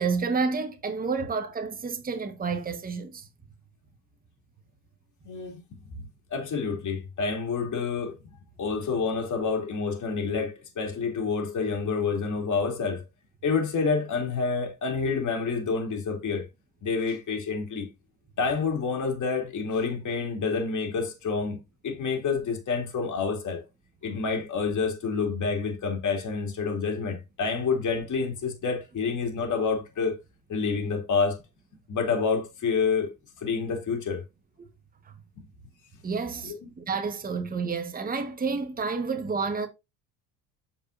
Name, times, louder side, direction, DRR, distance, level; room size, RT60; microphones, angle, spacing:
voice 1, 0.0-3.2 36.0-39.7, right 4 dB, 20° right, 1.3 m, -30 dB
voice 2, 5.2-5.6 6.3-8.2 8.6-13.0 13.4-16.5 16.8-17.9 18.4-21.6 21.8-23.6 24.0-30.2 30.5-31.4 31.9-33.1 33.4-34.2 36.4-36.7, left 5 dB, 40° left, 3.0 m, -28 dB
7.7 x 5.4 x 2.6 m
supercardioid pair, 90°, 43 cm